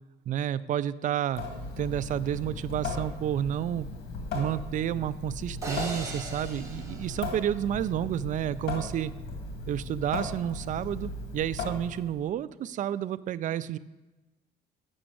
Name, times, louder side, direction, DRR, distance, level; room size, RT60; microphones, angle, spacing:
voice 1, 0.3-1.4 1.8-3.9 4.3-9.1 9.7-13.8, right 10 dB, 50° right, 17 dB, 0.4 m, -30 dB
Water tap faucet / Sink (filling or washing) / Drip, 1.3-12.2, left 2 dB, 70° left, 1.9 m, -37 dB
sound 1, 5.6-8.0, right 2 dB, 15° right, 2.3 m, -39 dB
7.0 x 6.3 x 7.5 m, 1.1 s
cardioid pair, 110°, 17 cm